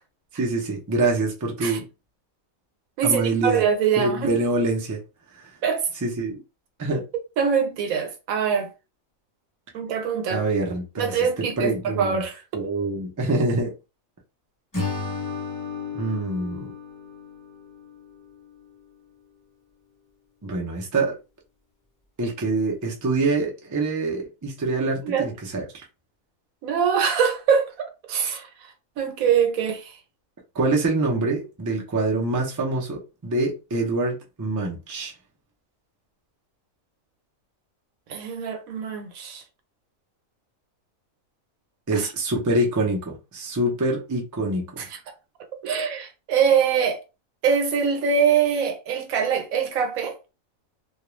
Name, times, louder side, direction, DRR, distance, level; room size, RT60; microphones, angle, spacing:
voice 1, 0.3-1.8 3.0-3.6 4.0-5.0 5.3-5.5 6.0-6.4 6.8-7.0 10.3-11.2 11.6-12.2 12.5-13.7 15.9-16.7 20.4-21.2 22.2-25.6 30.5-35.1 41.9-44.8, right 2 dB, 30° right, 0.3 m, -25 dB
voice 2, 3.0-4.3 5.6-5.9 7.4-8.7 9.7-10.4 11.0-12.4 25.0-25.3 26.6-28.5 29.0-30.0 38.1-39.4 41.9-42.1 44.8-45.0 45.6-47.0 47.4-50.2, right 7 dB, 85° right, 1.1 m, -23 dB
Acoustic guitar / Strum, 14.7-18.0, left 4 dB, 20° left, 0.6 m, -33 dB
2.3 x 2.3 x 3.0 m
omnidirectional pair, 1.4 m